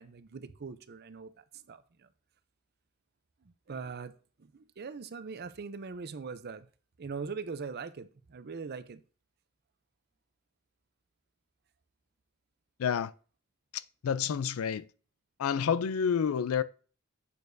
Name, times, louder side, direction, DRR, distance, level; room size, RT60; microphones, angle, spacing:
voice 1, 0.0-2.1 3.4-4.1 4.4-6.7 7.0-9.0, right 5 dB, 50° right, 0.5 m, -41 dB
voice 2, 12.8-13.1 13.7-14.9 15.4-16.6, left 7 dB, 75° left, 0.4 m, -29 dB
8.5 x 6.7 x 2.6 m
head